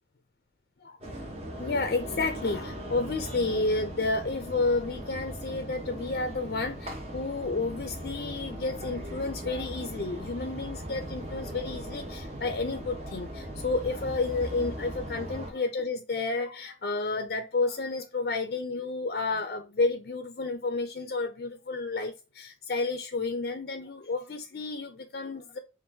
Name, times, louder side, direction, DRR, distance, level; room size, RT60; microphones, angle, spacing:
sound 1, 1.0-15.5, right 1 dB, 35° right, 0.9 m, -39 dB
voice 1, 1.6-25.6, left 3 dB, 55° left, 0.4 m, -31 dB
5.3 x 2.5 x 2.7 m
head